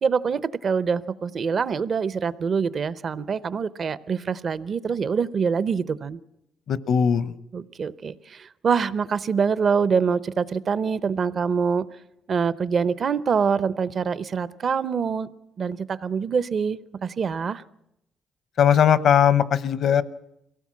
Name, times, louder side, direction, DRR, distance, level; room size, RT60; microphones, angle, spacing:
voice 1, 0.0-6.2 7.5-11.8 12.3-15.3 15.6-17.6, right 6 dB, 50° right, 16 dB, 0.7 m, -25 dB
voice 2, 6.7-7.3 18.6-20.0, left 8 dB, 65° left, 15 dB, 0.8 m, -19 dB
23.0 x 17.0 x 7.6 m, 0.84 s
cardioid pair, 90°, 0 cm